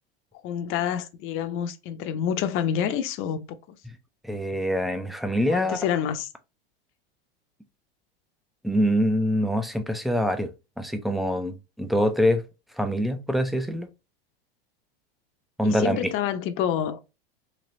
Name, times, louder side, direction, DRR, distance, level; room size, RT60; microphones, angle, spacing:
voice 1, 0.4-3.8 5.4-6.3 15.6-17.0, left 9 dB, 45° left, 0.6 m, -28 dB
voice 2, 4.2-5.8 8.6-10.5 10.8-12.4 12.8-13.9 15.6-16.1, equal, ahead, 0.4 m, -24 dB
3.2 x 2.8 x 2.6 m
hypercardioid pair, 105°, 30 cm